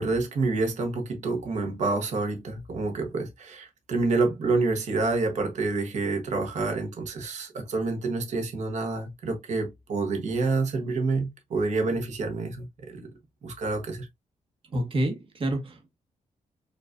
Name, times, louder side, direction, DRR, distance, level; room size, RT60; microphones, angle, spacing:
voice 1, 0.0-13.1 13.4-14.1, right 3 dB, 65° right, 1.3 m, -28 dB
voice 2, 14.7-15.9, right 1 dB, 45° right, 1.5 m, -28 dB
5.2 x 3.0 x 2.5 m
cardioid pair, 120°, 13 cm